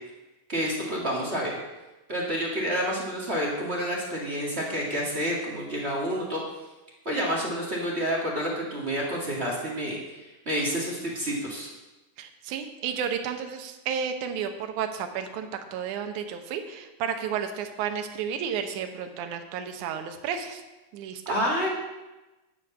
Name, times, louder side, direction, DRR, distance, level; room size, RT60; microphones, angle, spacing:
voice 1, 0.5-1.6 2.1-6.4 7.0-11.7 21.2-21.7, equal, 25° right, -3 dB, 1.5 m, -29 dB
voice 2, 12.2-20.6 20.9-21.4, right 7 dB, 80° right, 6 dB, 2.3 m, -32 dB
11.0 x 5.1 x 8.2 m, 1.1 s
omnidirectional pair, 3.5 m